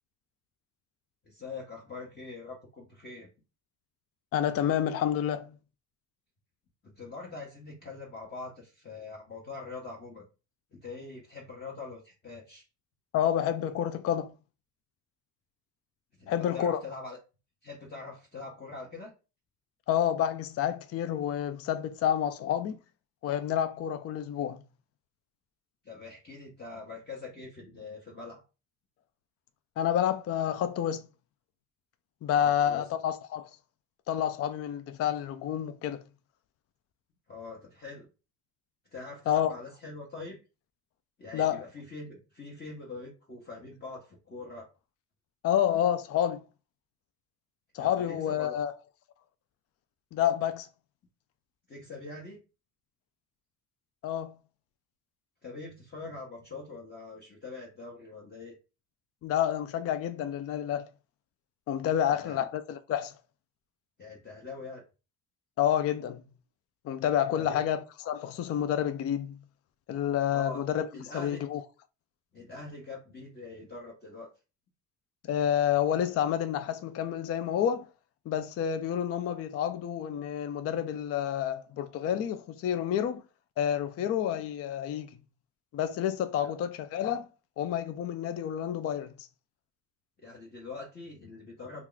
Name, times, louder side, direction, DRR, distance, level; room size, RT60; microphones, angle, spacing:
voice 1, 1.2-3.3 6.8-10.3 10.7-12.6 16.2-17.2 17.6-19.1 25.8-28.4 32.4-32.8 37.3-38.1 38.9-40.4 41.2-44.7 47.8-48.6 51.7-52.4 55.4-58.5 62.1-62.5 64.0-64.8 67.3-67.6 70.3-70.6 70.9-71.4 72.3-74.3 86.4-86.5 90.2-91.9, left 3 dB, 30° left, 1.0 m, -43 dB
voice 2, 4.3-5.5 13.1-14.3 16.3-16.8 19.9-22.8 23.2-24.6 29.8-31.1 32.2-33.5 34.1-36.0 39.3-39.5 41.3-41.6 45.4-46.4 47.7-48.7 50.1-50.7 54.0-54.3 59.2-60.9 61.7-63.1 65.6-66.2 66.8-69.4 69.9-70.9 71.1-71.6 75.3-77.9 78.3-83.2 83.6-85.1 85.7-87.3 87.6-89.3, left 10 dB, 45° left, 0.4 m, -29 dB
2.8 x 2.4 x 3.7 m
supercardioid pair, 85°, 35 cm